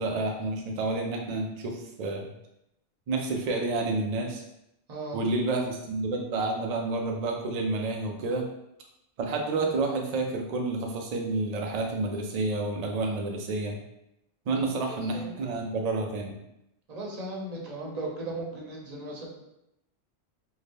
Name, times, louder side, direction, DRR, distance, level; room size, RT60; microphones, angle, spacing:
voice 1, 0.0-2.3 3.1-4.4 5.1-8.5 9.2-13.8 14.5-16.4, right 2 dB, 75° right, 1 dB, 0.3 m, -29 dB
voice 2, 4.9-5.2 14.9-15.4 16.9-19.3, right 2 dB, 45° right, -2 dB, 0.6 m, -37 dB
2.7 x 2.1 x 3.4 m, 0.84 s
omnidirectional pair, 1.2 m